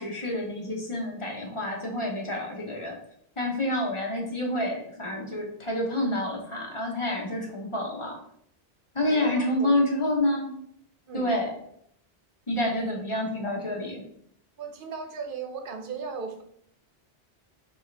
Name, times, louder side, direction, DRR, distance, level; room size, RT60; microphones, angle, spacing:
voice 1, 0.0-3.0 3.4-8.2 8.9-10.5 11.1-11.5 12.5-14.0, left 1 dB, 30° left, -1 dB, 1.0 m, -28 dB
voice 2, 9.1-9.8 11.1-11.3 14.6-16.4, right 5 dB, 60° right, 5 dB, 0.8 m, -36 dB
6.1 x 2.5 x 3.3 m, 0.69 s
omnidirectional pair, 1.1 m